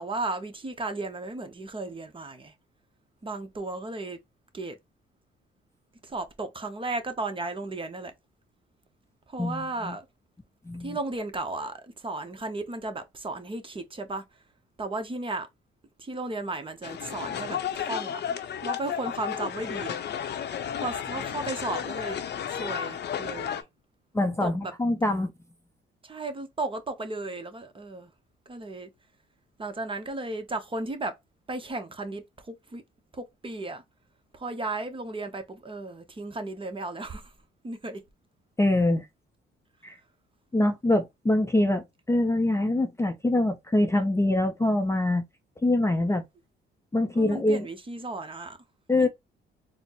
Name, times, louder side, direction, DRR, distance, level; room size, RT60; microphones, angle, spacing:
voice 1, 0.0-2.5 3.2-4.2 4.5-4.8 6.0-8.1 9.3-10.1 10.8-14.2 14.8-15.5 16.0-20.0 20.7-22.2 22.5-23.6 24.4-24.7 26.0-28.1 28.5-28.9 29.6-31.1 31.5-32.8 33.1-33.8 34.3-37.3 37.6-38.0 47.1-48.6 49.0-49.1, right 2 dB, 25° right, 0.9 m, -35 dB
voice 2, 9.4-9.9 10.7-11.0 24.1-25.3 38.6-39.1 39.8-40.0 40.5-45.2 45.6-46.2 46.9-47.7 48.9-49.1, left 1 dB, 15° left, 0.5 m, -24 dB
sound 1, 16.8-23.6, left 9 dB, 60° left, 0.7 m, -33 dB
4.1 x 2.1 x 2.9 m
cardioid pair, 90°, 20 cm